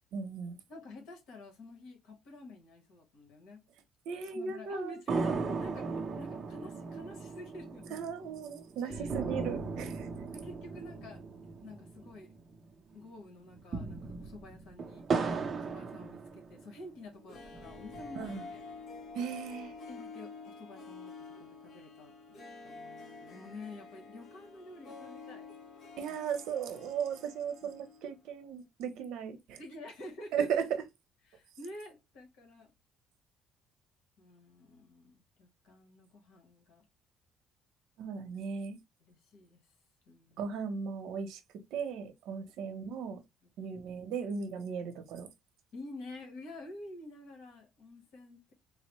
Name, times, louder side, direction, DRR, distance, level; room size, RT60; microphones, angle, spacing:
voice 1, 0.1-0.6 4.1-5.0 7.9-10.1 18.2-18.5 19.1-19.7 26.0-29.6 30.3-30.7 38.0-38.8 40.4-41.4 41.7-43.2 43.6-45.3, right 6 dB, 80° right, 0.7 m, -36 dB
voice 2, 0.7-3.6 4.3-8.0 8.8-9.4 10.3-11.2 11.6-12.3 12.9-15.1 15.6-18.6 19.9-25.5 26.0-26.2 27.6-27.8 29.6-30.5 31.3-32.7 34.2-36.8 39.1-39.6 40.1-40.4 42.7-42.8 45.7-48.5, left 2 dB, 80° left, 1.2 m, -49 dB
sound 1, 5.1-12.7 12.9-13.0 13.5-16.8 17.4-18.3, right 4 dB, 35° right, 0.6 m, -37 dB
Harp, 17.1-28.1 28.4-28.5, left 4 dB, 55° left, 0.8 m, -49 dB
3.9 x 2.1 x 2.9 m
cardioid pair, 140°, 0 cm